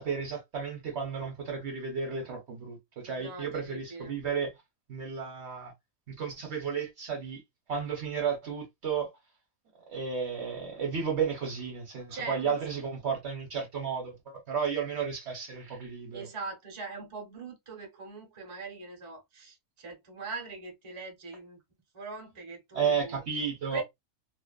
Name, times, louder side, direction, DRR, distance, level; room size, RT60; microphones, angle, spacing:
voice 1, 0.0-4.5 4.9-5.7 6.1-7.4 7.7-9.1 9.9-16.3 22.7-23.8, right 6 dB, 55° right, 1.0 m, -33 dB
voice 2, 3.1-4.1 12.1-12.6 16.1-21.6 21.9-23.2 23.7-23.8, right 4 dB, 30° right, 0.7 m, -41 dB
2.6 x 2.1 x 2.3 m
omnidirectional pair, 1.5 m